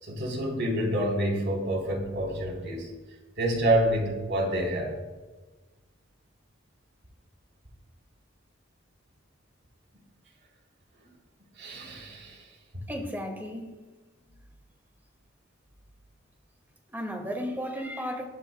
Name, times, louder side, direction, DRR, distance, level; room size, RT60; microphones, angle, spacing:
voice 1, 0.0-2.9 3.4-4.9 11.6-12.5, right 1 dB, 65° right, -1 dB, 4.0 m, -28 dB
voice 2, 12.9-13.7 16.9-18.3, equal, 10° right, 2 dB, 2.2 m, -34 dB
21.0 x 11.5 x 2.3 m, 1.3 s
head